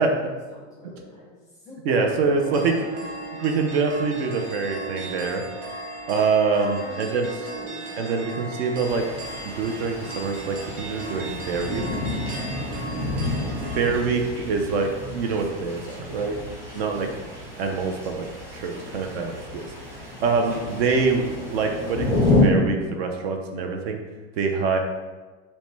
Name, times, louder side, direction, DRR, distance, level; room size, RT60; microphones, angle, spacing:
voice 1, 0.0-2.8 6.5-7.9 8.3-9.1 18.7-18.8 19.8-19.9, left 1 dB, 10° left, -6 dB, 0.6 m, -44 dB
voice 2, 1.9-2.8 3.4-5.4 6.1-7.3 8.0-9.0 9.4-11.8 13.8-16.4 16.7-17.1 17.6-18.3 18.5-19.6 20.2-24.0 24.4-24.8, right 4 dB, 55° right, 3 dB, 0.5 m, -25 dB
sound 1, 2.4-13.9, right 2 dB, 85° right, 1.0 m, -37 dB
sound 2, 8.8-22.4, left 2 dB, 5° right, 1.0 m, -30 dB
5.5 x 2.2 x 3.2 m, 1.3 s
supercardioid pair, 170°, 38 cm